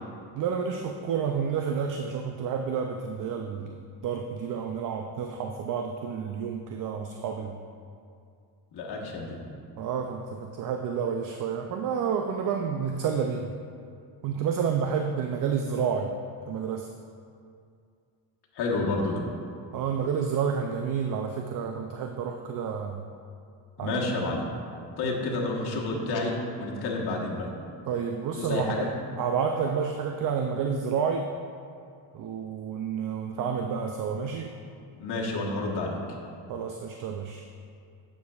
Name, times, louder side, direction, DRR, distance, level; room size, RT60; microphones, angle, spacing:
voice 1, 0.3-7.6 9.8-13.5 14.2-16.1 16.5-16.9 19.7-23.0 23.8-24.0 25.0-25.1 27.9-28.7 29.2-31.3 32.1-34.5 36.5-37.4, right 6 dB, 50° right, 4 dB, 0.4 m, -30 dB
voice 2, 8.7-9.4 18.5-19.2 23.8-24.4 25.0-27.5 28.4-28.9 34.9-36.0, left 2 dB, 60° left, -3 dB, 1.3 m, -29 dB
9.3 x 6.8 x 2.4 m, 2.3 s
cardioid pair, 110°, 43 cm